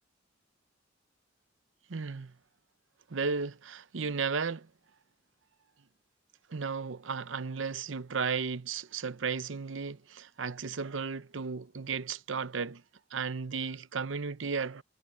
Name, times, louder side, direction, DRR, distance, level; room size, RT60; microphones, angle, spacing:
voice 1, 1.9-2.3 3.1-4.7 6.5-12.8 13.1-14.8, right 5 dB, 80° right, 0.8 m, -34 dB
head